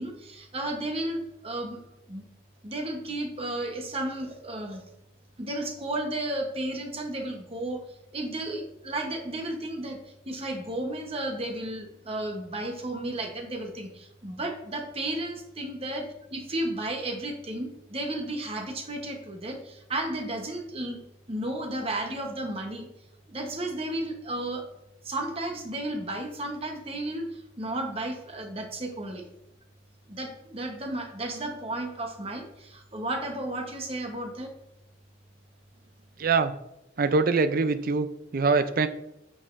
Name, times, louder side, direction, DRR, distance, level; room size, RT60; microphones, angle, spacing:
voice 1, 0.0-1.8 2.1-2.2 2.6-4.8 5.4-7.8 8.1-10.0 10.2-21.0 21.3-22.9 23.3-24.6 25.0-29.2 30.1-34.5, right 1 dB, 30° right, 3 dB, 1.0 m, -33 dB
voice 2, 36.2-36.5 37.0-38.9, right 4 dB, 50° right, 12 dB, 0.5 m, -24 dB
8.7 x 6.5 x 2.6 m, 0.83 s
head